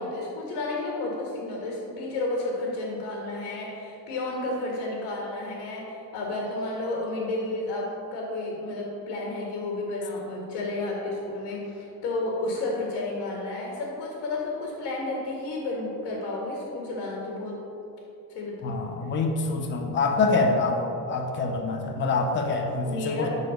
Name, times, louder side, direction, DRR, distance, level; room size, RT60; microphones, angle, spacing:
voice 1, 0.0-17.6 18.3-18.8 22.8-23.3, left 2 dB, 80° left, -2 dB, 1.9 m, -31 dB
voice 2, 18.6-20.8 21.1-23.3, left 3 dB, 30° left, 3 dB, 0.8 m, -25 dB
11.5 x 4.2 x 5.2 m, 2.9 s
cardioid pair, 150°, 40 cm